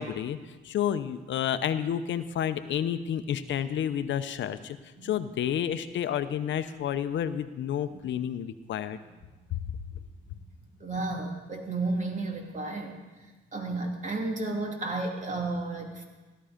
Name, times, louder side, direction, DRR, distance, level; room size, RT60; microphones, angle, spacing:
voice 1, 0.0-4.8 5.0-9.0, left 9 dB, 70° left, 11 dB, 0.8 m, -30 dB
voice 2, 10.8-12.9 13.5-16.0, right 2 dB, 40° right, 2 dB, 2.8 m, -32 dB
16.5 x 12.5 x 5.1 m, 1.2 s
cardioid pair, 90°, 20 cm